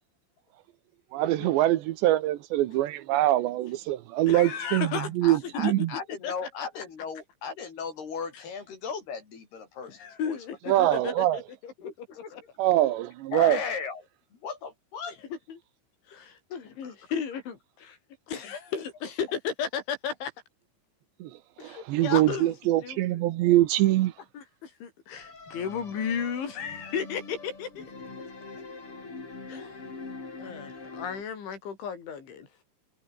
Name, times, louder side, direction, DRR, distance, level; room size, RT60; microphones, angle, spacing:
voice 1, 1.1-5.9 10.7-11.4 12.6-13.6 21.2-21.3 21.6-24.1, right 15 dB, 75° right, 3.1 m, -24 dB
voice 2, 4.3-5.1 5.6-5.7 6.2-6.3 10.0-11.9 12.3-12.4 15.5-15.6 16.1-18.0 18.3-20.3 21.6-22.5 22.8-23.2 24.3-27.9 29.5-29.8 30.4-32.5, left 7 dB, 75° left, 6.8 m, -34 dB
voice 3, 4.9-10.4 10.6-11.2 11.8-12.6 13.3-14.0 14.3-15.2 16.8-16.9, left 5 dB, 55° left, 7.0 m, -37 dB
sound 1, 25.2-31.2, left 3 dB, 30° left, 5.7 m, -43 dB
omnidirectional pair, 5.5 m